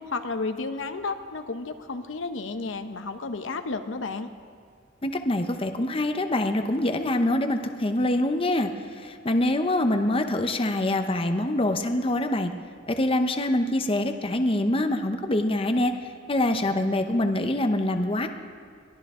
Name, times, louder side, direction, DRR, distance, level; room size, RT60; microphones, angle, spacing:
voice 1, 0.1-4.3, left 3 dB, 85° left, 8 dB, 0.8 m, -32 dB
voice 2, 5.0-12.5 12.9-15.9 16.3-18.3, left 1 dB, 30° left, 6 dB, 0.8 m, -25 dB
22.5 x 15.0 x 3.7 m, 2.2 s
head